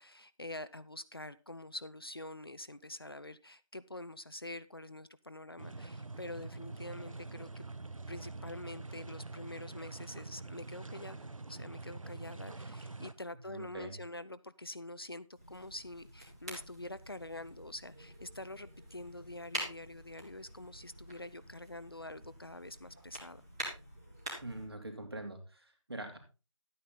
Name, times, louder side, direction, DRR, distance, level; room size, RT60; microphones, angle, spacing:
voice 1, 0.0-7.7 8.1-23.4, left 1 dB, 45° left, 0.6 m, -46 dB
sound 1, 5.6-13.1, right 3 dB, 75° right, 1.1 m, -45 dB
voice 2, 13.5-13.9 24.4-26.2, right 1 dB, 50° right, 3.1 m, -44 dB
sound 2, 15.3-24.7, equal, 10° right, 1.7 m, -47 dB
12.0 x 9.4 x 4.0 m
figure-of-eight pair, 175°, 17 cm